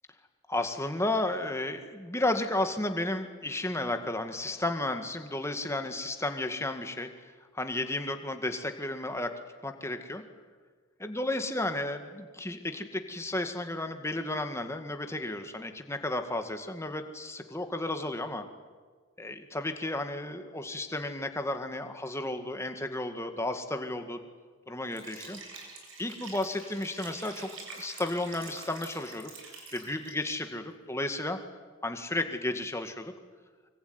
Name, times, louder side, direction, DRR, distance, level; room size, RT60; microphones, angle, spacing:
voice 1, 0.5-7.1 7.5-9.3 9.6-10.2 11.0-18.4 19.2-24.2 24.7-25.4 26.0-29.3 29.7-31.4 31.8-33.1, left 2 dB, 15° left, 6 dB, 2.0 m, -33 dB
Liquid, 24.9-30.4, right 3 dB, 70° right, 7.1 m, -46 dB
25.0 x 24.0 x 9.6 m, 1.5 s
head